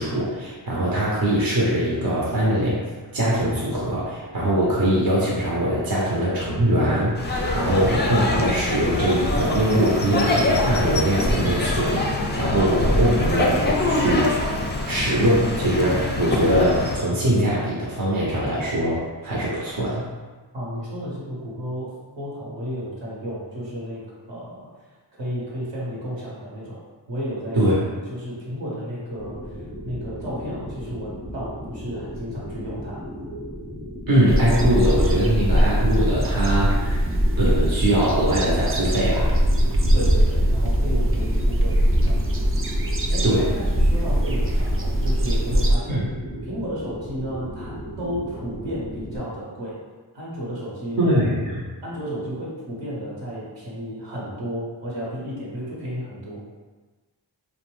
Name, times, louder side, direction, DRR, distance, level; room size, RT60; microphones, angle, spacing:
voice 1, 0.0-2.8 3.1-12.0 12.4-14.4 14.9-20.1 27.5-27.8 34.1-37.0 37.4-39.3 43.2-43.5 45.9-46.1 51.0-51.6, right 1 dB, 50° right, -6 dB, 0.8 m, -22 dB
sound 1, 7.2-17.0, left 2 dB, 25° left, 0.5 m, -24 dB
voice 2, 20.5-24.0 24.3-24.7 25.1-26.8 27.1-29.6 29.8-33.0 39.9-42.2 43.1-43.3 43.5-46.0 46.4-49.8 50.1-51.0 51.8-56.4, equal, 75° right, -6 dB, 1.1 m, -33 dB
sound 2, 29.2-49.2, equal, 5° right, 0.7 m, -36 dB
sound 3, 34.3-45.8, equal, 30° right, 0.4 m, -21 dB
2.5 x 2.1 x 3.1 m, 1.3 s
cardioid pair, 40°, 44 cm